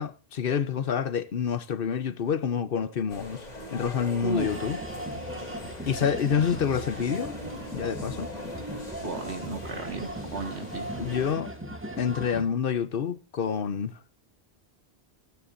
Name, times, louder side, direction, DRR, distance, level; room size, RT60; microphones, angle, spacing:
voice 1, 0.0-4.8 5.9-7.3 7.7-8.3 11.0-11.5 12.0-14.0, left 7 dB, 60° left, 1.0 m, -28 dB
sound 1, 3.1-11.3, left 1 dB, 40° left, 3.2 m, -41 dB
voice 2, 4.2-4.7 9.0-10.9, right 3 dB, 85° right, 2.3 m, -34 dB
sound 2, 4.4-12.4, right 1 dB, 10° right, 2.1 m, -38 dB
25.0 x 9.5 x 2.6 m
omnidirectional pair, 1.1 m